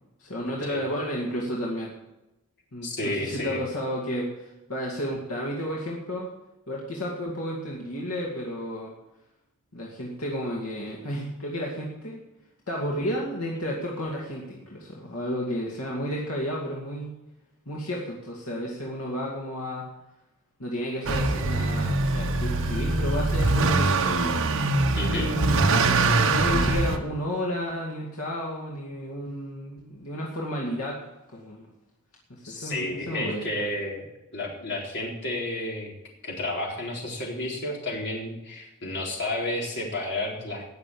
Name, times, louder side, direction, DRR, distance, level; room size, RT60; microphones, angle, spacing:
voice 1, 0.2-1.9 2.7-6.3 6.7-8.9 9.7-12.2 12.7-17.1 17.7-19.9 20.6-24.4 25.1-31.0 31.3-31.7 32.3-33.7, equal, 75° left, -2 dB, 2.4 m, -32 dB
voice 2, 2.8-3.6 24.9-25.3 32.4-35.9 36.2-40.6, left 1 dB, 50° left, -1 dB, 4.0 m, -31 dB
Motor vehicle (road) / Accelerating revving vroom, 21.1-27.0, right 3 dB, 65° right, 1.3 m, -23 dB
18.5 x 6.7 x 7.1 m, 0.97 s
head